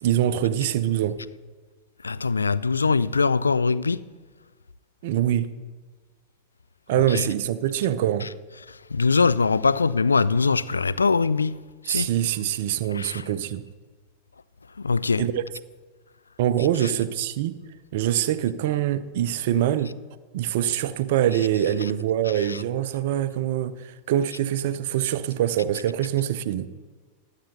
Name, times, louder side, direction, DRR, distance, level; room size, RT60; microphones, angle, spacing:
voice 1, 0.0-1.2 5.0-5.5 6.9-8.3 11.9-13.7 15.2-15.4 16.4-17.6 17.9-19.9 20.3-26.7, right 11 dB, 50° right, 0.5 m, -24 dB
voice 2, 2.0-4.0 7.1-7.2 8.9-11.5 11.9-12.1 13.0-13.2 14.8-15.2, left 4 dB, 75° left, 0.3 m, -22 dB
20.0 x 8.2 x 2.9 m
figure-of-eight pair, 90°, 0 cm